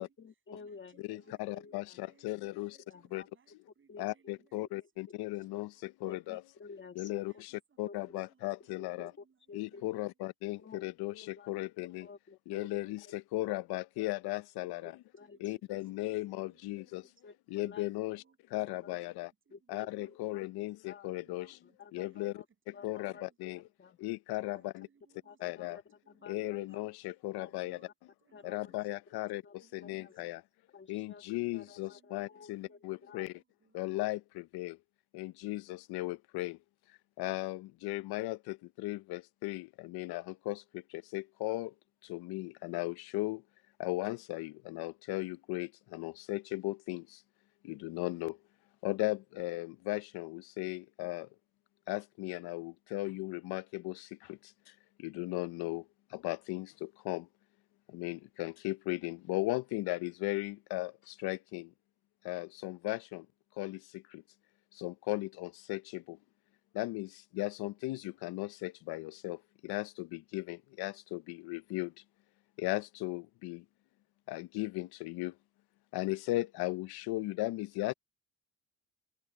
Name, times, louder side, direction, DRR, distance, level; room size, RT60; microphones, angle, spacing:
voice 1, 0.0-2.0 2.5-3.3 3.9-4.1 4.8-4.9 6.1-7.4 7.8-8.2 8.8-9.1 9.5-10.0 10.6-11.5 12.0-12.9 13.5-13.6 14.8-15.6 17.2-17.9 18.8-18.9 19.5-20.4 20.8-21.1 21.6-22.4 22.7-23.3 23.8-24.0 24.5-24.6 25.2-26.8 27.4-27.6 28.3-28.6 29.4-29.5 29.8-30.1 30.7-33.3, left 5 dB, 30° left, 1.6 m, -53 dB
voice 2, 0.6-4.8 5.1-6.3 7.2-10.2 14.6-14.9 15.2-16.1 16.4-17.2 18.1-19.1 19.4-20.5 21.2-22.3 22.7-23.7 24.3-25.6 25.9-26.9 27.5-27.9 28.2-30.4 31.6-34.0, right 6 dB, 35° right, 6.9 m, -70 dB
voice 3, 1.1-2.8 3.1-3.2 4.0-6.4 7.0-7.3 7.8-9.1 9.5-12.1 12.5-14.9 15.4-17.0 17.5-18.2 18.5-19.3 19.7-21.5 21.9-23.6 24.0-24.9 25.4-25.8 26.3-27.8 28.4-29.4 29.7-30.4 30.9-33.3 33.7-34.8 35.1-36.6 37.2-41.7 42.0-43.4 43.8-47.2 47.6-48.4 48.8-51.3 51.9-57.3 57.9-61.7 62.2-63.3 63.6-64.2 64.7-66.2 66.7-71.9 72.6-73.6 74.3-75.4 75.9-77.9, left 18 dB, 90° left, 0.6 m, -37 dB
cardioid pair, 140°, 37 cm